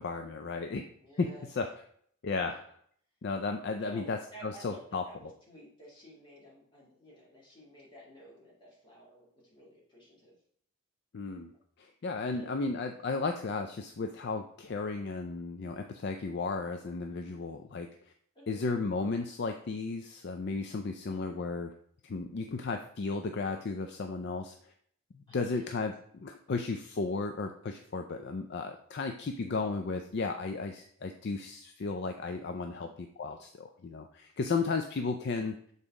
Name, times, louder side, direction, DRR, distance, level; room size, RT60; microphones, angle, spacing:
voice 1, 0.0-0.9 1.2-1.3 1.5-1.7 2.2-2.6 3.2-5.0 11.1-11.5 11.8-17.9 18.5-21.7 22.0-24.7 25.1-35.6, left 4 dB, 50° left, 6 dB, 0.4 m, -34 dB
voice 2, 1.0-1.5 2.3-2.6 3.8-10.4 12.2-12.7 18.3-18.6 25.3-25.8 32.7-32.9 33.3-33.4, right 1 dB, 20° left, -5 dB, 2.2 m, -53 dB
6.9 x 4.1 x 3.6 m, 0.64 s
head